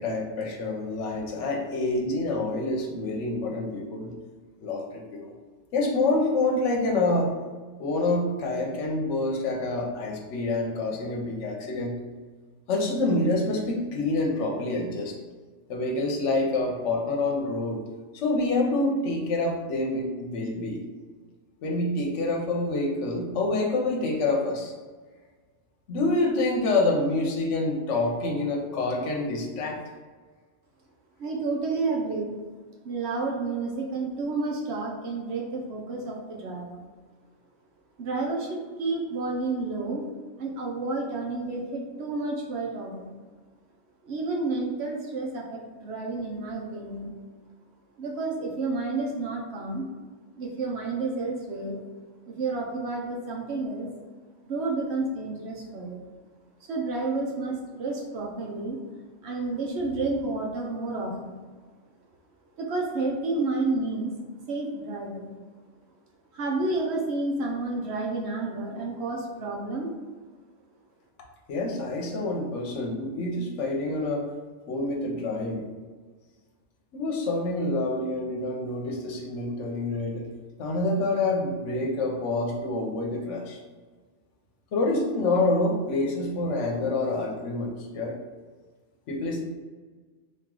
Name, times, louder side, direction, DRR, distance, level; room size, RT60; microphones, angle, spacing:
voice 1, 0.0-4.1 4.6-5.3 5.7-7.3 7.8-12.0 12.7-15.2 15.7-17.8 18.1-20.8 21.6-24.7 25.9-29.8 71.5-74.3 74.7-75.6 76.9-80.3 80.6-83.6 84.7-88.1 89.1-89.4, left 2 dB, 70° left, 0 dB, 1.0 m, -27 dB
voice 2, 31.2-32.4 32.8-36.8 38.0-40.0 40.4-43.2 44.0-47.1 48.0-49.9 50.3-51.8 52.3-53.9 54.5-56.0 56.6-58.8 59.2-61.4 62.6-64.1 64.5-65.3 66.3-69.9, right 3 dB, 65° right, -1 dB, 0.9 m, -30 dB
3.0 x 2.8 x 3.7 m, 1.4 s
omnidirectional pair, 1.3 m